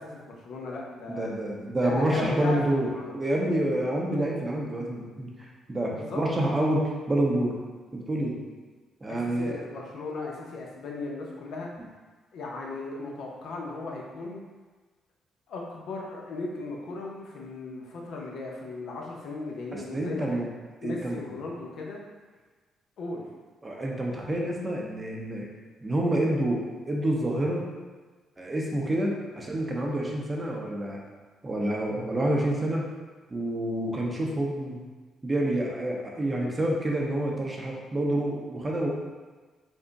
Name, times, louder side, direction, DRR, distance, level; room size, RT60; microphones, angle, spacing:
voice 1, 0.0-1.3 1.8-3.2 5.9-6.2 9.1-11.7 12.3-14.4 15.5-20.5 20.8-22.0 23.0-23.2, left 3 dB, 70° left, -1 dB, 0.7 m, -36 dB
voice 2, 1.2-2.9 3.1-7.6 7.9-8.4 9.0-9.6 19.7-20.5 20.8-21.2 23.6-25.5 25.8-27.6 28.4-31.0 31.4-32.8 33.3-34.8 35.2-38.9, right 1 dB, 20° right, -2 dB, 0.7 m, -28 dB
3.5 x 2.1 x 3.9 m, 1.3 s
cardioid pair, 90°, 0 cm